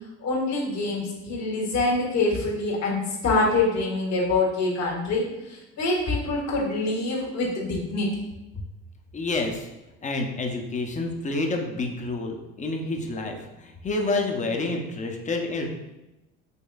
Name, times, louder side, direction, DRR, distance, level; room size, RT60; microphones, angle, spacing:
voice 1, 0.2-5.3 5.8-8.1, left 2 dB, 60° left, -3 dB, 1.5 m, -25 dB
voice 2, 9.1-9.7 10.0-15.7, left 2 dB, 25° left, 3 dB, 0.7 m, -28 dB
5.3 x 3.1 x 2.3 m, 0.96 s
supercardioid pair, 85°, 31 cm